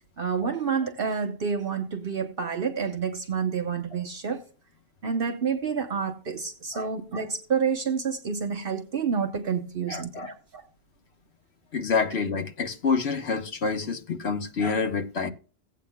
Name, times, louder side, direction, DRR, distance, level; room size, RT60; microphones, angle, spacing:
voice 1, 0.2-4.4 5.0-10.7, right 6 dB, 60° right, 1.1 m, -29 dB
voice 2, 9.9-10.3 11.7-15.3, left 5 dB, 80° left, 1.4 m, -27 dB
17.0 x 8.5 x 2.2 m
omnidirectional pair, 1.1 m